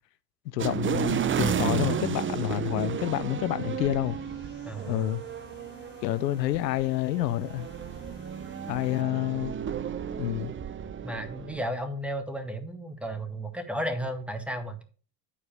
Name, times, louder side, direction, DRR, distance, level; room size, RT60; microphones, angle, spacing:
voice 1, 0.5-4.2 4.9-5.2 6.0-7.7 8.7-9.6 10.2-10.5, left 14 dB, 85° left, 0.6 m, -28 dB
sound 1, 0.6-11.6, right 8 dB, 25° right, 0.7 m, -33 dB
sound 2, 2.5-9.0, left 11 dB, 55° left, 2.8 m, -54 dB
voice 2, 4.6-5.2 11.0-14.8, right 1 dB, ahead, 1.8 m, -34 dB
10.0 x 4.6 x 6.0 m
hypercardioid pair, 70°, 49 cm